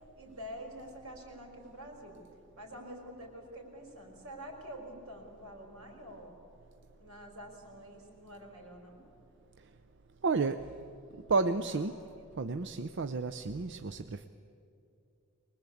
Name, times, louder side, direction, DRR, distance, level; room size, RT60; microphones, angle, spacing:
voice 1, 0.1-2.2 2.6-6.3 7.0-9.0 11.7-11.8 12.2-12.4, equal, 80° right, 2 dB, 5.0 m, -47 dB
voice 2, 10.2-10.6 11.3-12.0 12.4-14.3, right 4 dB, 55° right, 9 dB, 0.6 m, -31 dB
24.0 x 20.0 x 8.5 m, 2.6 s
head